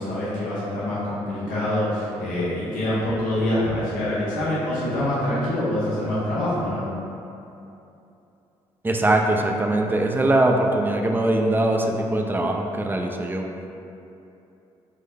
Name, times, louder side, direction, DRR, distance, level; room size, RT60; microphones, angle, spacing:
voice 1, 0.0-6.9, left 1 dB, 80° left, -10 dB, 1.0 m, -25 dB
voice 2, 8.8-13.4, right 1 dB, 15° right, 2 dB, 0.4 m, -21 dB
3.7 x 2.1 x 3.4 m, 2.8 s
supercardioid pair, 55°, 13 cm